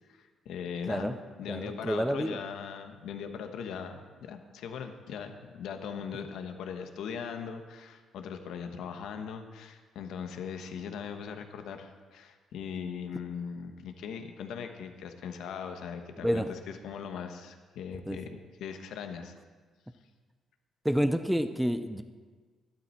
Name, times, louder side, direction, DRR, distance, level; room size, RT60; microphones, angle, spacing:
voice 1, 0.1-19.4, left 7 dB, 80° left, 6 dB, 1.1 m, -40 dB
voice 2, 1.5-2.4 16.2-16.5 18.1-18.2 20.8-22.0, equal, 5° right, 9 dB, 0.6 m, -29 dB
12.5 x 12.0 x 4.5 m, 1.4 s
cardioid pair, 90°, 0 cm